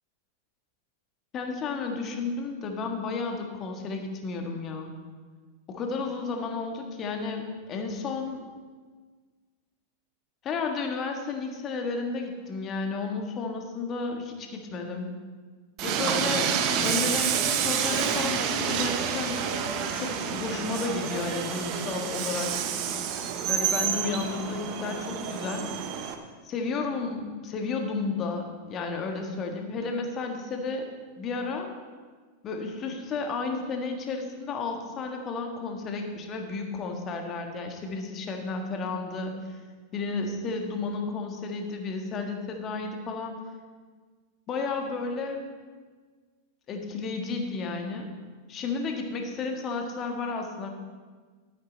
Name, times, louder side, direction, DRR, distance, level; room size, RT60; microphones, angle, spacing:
voice 1, 1.3-4.9 5.7-8.5 10.4-15.1 15.8-19.4 19.9-22.5 23.5-25.7 26.4-30.9 31.2-31.7 32.4-39.6 39.9-43.4 44.5-45.4 46.7-48.1 48.5-50.7, left 4 dB, 30° left, 3 dB, 1.7 m, -32 dB
Train, 15.8-26.1, right 7 dB, 40° right, 1.0 m, -28 dB
12.5 x 9.6 x 4.1 m, 1.5 s
figure-of-eight pair, 90°, 0 cm